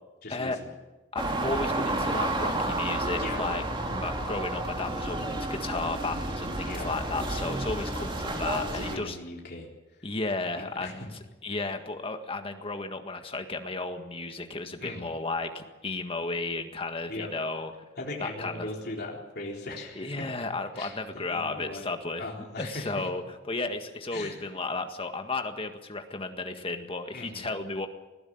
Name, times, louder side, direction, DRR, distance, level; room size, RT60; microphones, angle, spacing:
voice 1, 0.2-0.5 3.2-3.6 6.6-6.9 8.5-9.7 10.6-11.1 14.8-15.1 17.1-17.3 18.0-20.2 20.8-21.8 22.2-22.9 24.1-24.4 27.1-27.5, left 2 dB, 55° left, -1 dB, 3.9 m, -39 dB
voice 2, 1.1-9.2 10.0-11.1 11.4-17.7 18.2-18.7 20.0-22.3 22.6-27.9, left 3 dB, 30° left, 6 dB, 1.7 m, -34 dB
sound 1, 1.2-9.0, right 1 dB, 25° right, 2.8 m, -31 dB
20.5 x 15.0 x 8.8 m, 1.1 s
head